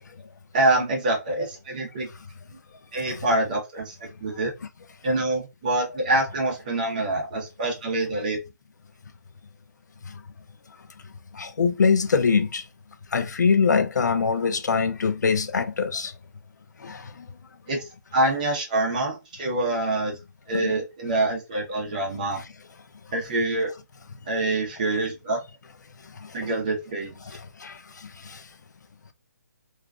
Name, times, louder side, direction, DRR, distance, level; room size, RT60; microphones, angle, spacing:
voice 1, 0.5-2.1 2.9-3.9 4.2-4.5 5.0-8.4 17.7-17.8 18.1-20.2 20.5-22.4 23.1-23.7 24.3-25.4 26.3-27.1, right 2 dB, 30° right, 0.8 m, -25 dB
voice 2, 11.4-12.6 13.1-16.1 16.8-17.0 20.5-20.7 27.6-27.7, left 5 dB, 85° left, 0.4 m, -22 dB
2.4 x 2.2 x 2.3 m
hypercardioid pair, 170°, 9 cm